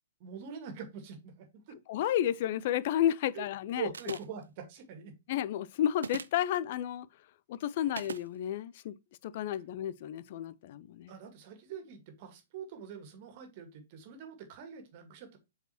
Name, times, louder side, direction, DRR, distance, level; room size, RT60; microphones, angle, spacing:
voice 1, 0.2-1.8 3.3-3.4 3.8-5.1 11.1-15.4, right 8 dB, 40° right, 2.0 m, -44 dB
voice 2, 1.9-4.2 5.3-7.1 7.5-9.0 9.2-11.1, left 11 dB, 45° left, 0.5 m, -32 dB
sound 1, 3.9-4.4 5.9-6.4 7.9-8.3, right 6 dB, 65° right, 0.5 m, -39 dB
7.8 x 4.8 x 2.9 m
figure-of-eight pair, 110°, 0 cm